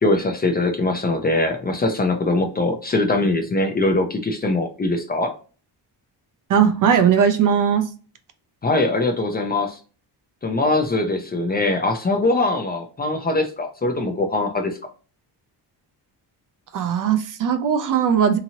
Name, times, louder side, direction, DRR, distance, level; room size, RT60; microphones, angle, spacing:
voice 1, 0.0-5.3 8.6-9.7 10.4-14.8, left 2 dB, 25° left, 4 dB, 0.4 m, -22 dB
voice 2, 6.5-7.9 16.7-18.4, right 7 dB, 50° right, 8 dB, 0.5 m, -18 dB
2.9 x 2.6 x 2.7 m, 0.36 s
wide cardioid pair, 150°, 41 cm